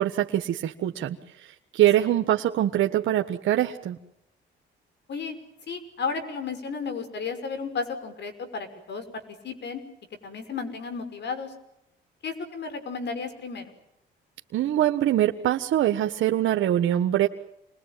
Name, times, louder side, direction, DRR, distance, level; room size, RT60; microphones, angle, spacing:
voice 1, 0.0-4.0 14.5-17.3, right 12 dB, 75° right, 5 dB, 1.4 m, -23 dB
voice 2, 5.7-9.8 10.2-11.5 12.2-13.7, left 5 dB, 60° left, 9 dB, 5.9 m, -33 dB
28.0 x 21.0 x 9.1 m, 0.85 s
cardioid pair, 90°, 20 cm